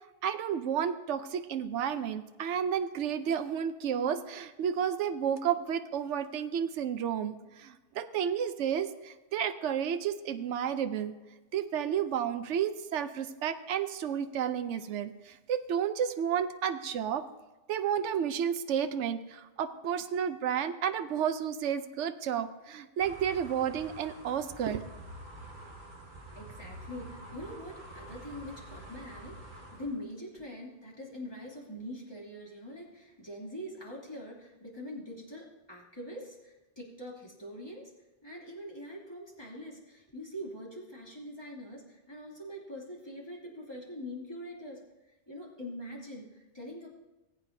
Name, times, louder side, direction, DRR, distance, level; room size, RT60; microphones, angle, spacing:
voice 1, 0.2-11.1 11.5-17.3 17.7-24.8, right 8 dB, 80° right, 10 dB, 1.0 m, -31 dB
sound 1, 23.0-30.0, right 1 dB, 45° right, 1.7 m, -47 dB
voice 2, 26.2-37.9 38.2-44.8 45.3-46.9, equal, 20° left, -4 dB, 2.8 m, -43 dB
19.5 x 8.6 x 2.7 m, 1.1 s
omnidirectional pair, 1.2 m